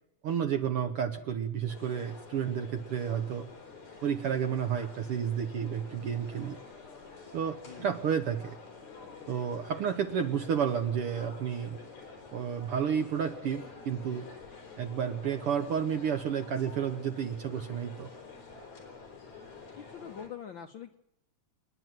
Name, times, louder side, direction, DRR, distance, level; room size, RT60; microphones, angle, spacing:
voice 1, 0.2-3.5 4.0-6.6 7.3-8.6 9.3-11.8 12.3-14.3 14.8-18.1, right 8 dB, 65° right, 8 dB, 1.5 m, -31 dB
sound 1, 1.7-20.3, left 4 dB, 65° left, 5.5 m, -49 dB
voice 2, 19.8-21.0, left 8 dB, 85° left, 4 dB, 1.0 m, -44 dB
29.0 x 10.5 x 9.2 m, 0.80 s
omnidirectional pair, 3.5 m